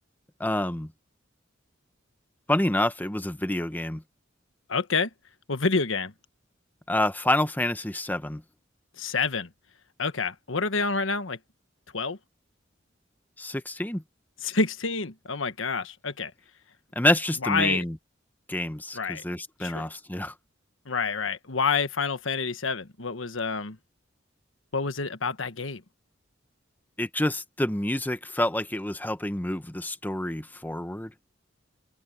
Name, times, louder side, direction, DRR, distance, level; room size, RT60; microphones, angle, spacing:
voice 1, 0.4-0.9 2.5-4.0 6.9-8.4 13.4-14.0 16.9-18.0 18.5-20.3 27.0-31.1, left 1 dB, 10° left, 0.9 m, -27 dB
voice 2, 4.7-5.1 5.5-6.1 9.0-9.5 10.0-11.4 11.9-12.2 14.4-16.3 17.4-17.8 18.9-19.2 19.6-19.9 20.8-23.8 24.7-25.8, left 4 dB, 90° left, 1.4 m, -28 dB
open air
head